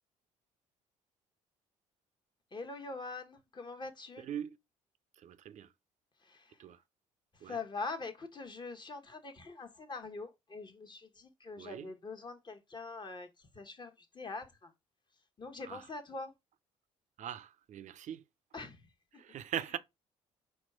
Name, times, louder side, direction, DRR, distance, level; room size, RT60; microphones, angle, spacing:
voice 1, 2.5-4.2 7.5-13.3 13.5-13.9 14.1-14.4 15.4-16.3 18.5-18.8, left 3 dB, 30° left, 1.1 m, -43 dB
voice 2, 4.2-4.6 5.2-5.7 6.6-6.8 7.4-7.6 11.6-11.9 15.6-15.9 17.2-18.2 19.2-19.8, right 10 dB, 50° right, 0.5 m, -41 dB
4.3 x 2.3 x 4.5 m
hypercardioid pair, 55°, 16 cm